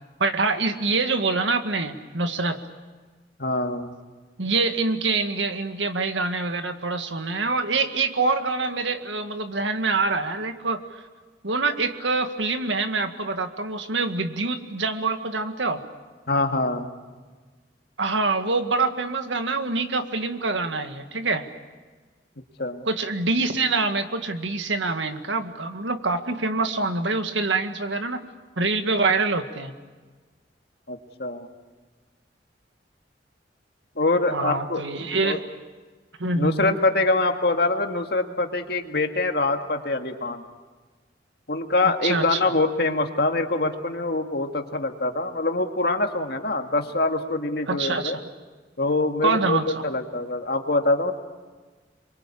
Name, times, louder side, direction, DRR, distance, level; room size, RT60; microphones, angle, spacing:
voice 1, 0.2-2.6 4.4-10.8 11.4-15.8 18.0-21.5 22.9-28.2 28.6-29.7 34.3-35.4 36.2-36.8 42.0-42.5 47.7-48.2 49.2-49.8, right 3 dB, 90° right, 7 dB, 1.9 m, -25 dB
voice 2, 3.4-3.9 16.3-16.9 22.6-22.8 30.9-31.5 34.0-34.8 35.2-35.4 36.4-40.4 41.5-48.2 48.8-49.6 49.8-51.1, left 2 dB, 60° left, 5 dB, 2.0 m, -24 dB
26.5 x 23.5 x 8.6 m, 1.4 s
head